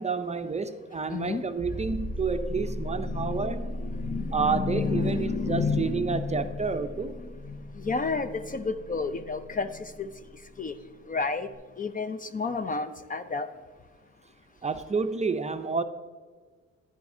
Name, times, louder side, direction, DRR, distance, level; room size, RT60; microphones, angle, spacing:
voice 1, 0.0-3.6 4.3-7.1 14.6-15.8, right 4 dB, 25° right, 8 dB, 0.5 m, -29 dB
voice 2, 1.1-1.4 2.5-6.6 7.1-10.1 10.6-10.8 11.1-11.5 11.8-13.5, left 4 dB, 30° left, 11 dB, 0.4 m, -31 dB
sound 1, 1.6-10.0 11.5-11.6, equal, 50° left, 2.1 m, -37 dB
10.5 x 9.9 x 2.7 m, 1.5 s
cardioid pair, 90°, 30 cm